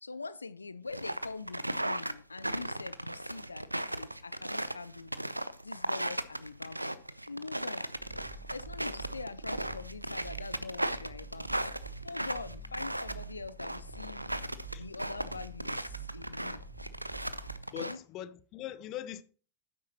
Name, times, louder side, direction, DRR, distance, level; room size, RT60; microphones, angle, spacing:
voice 1, 0.0-5.4 5.6-6.9 7.3-7.8 8.5-11.5 12.0-14.2 14.7-16.6 17.7-18.0, left 4 dB, 80° left, 0.5 m, -43 dB
sound 1, 0.9-18.0, right 1 dB, 85° right, 0.6 m, -36 dB
sound 2, 7.9-17.6, right 3 dB, 40° right, 3.5 m, -47 dB
voice 2, 17.7-19.2, left 12 dB, 35° left, 0.8 m, -41 dB
12.0 x 9.6 x 2.9 m
figure-of-eight pair, 90°, 0 cm